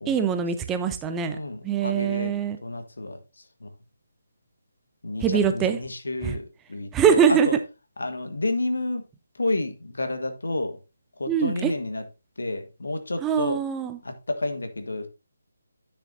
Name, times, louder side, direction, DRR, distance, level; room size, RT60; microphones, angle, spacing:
voice 1, 0.1-1.4 1.6-2.6 5.2-5.8 6.2-6.3 6.9-7.5 11.3-11.7 13.2-14.0, right 7 dB, 10° right, 8 dB, 0.6 m, -23 dB
voice 2, 1.3-2.3 2.6-3.2 3.6-3.7 5.0-7.6 8.0-9.0 9.4-10.8 11.2-12.0 12.4-13.6 14.0-15.1, left 2 dB, 70° left, 7 dB, 1.5 m, -30 dB
9.9 x 6.8 x 2.7 m, 0.28 s
figure-of-eight pair, 150°, 0 cm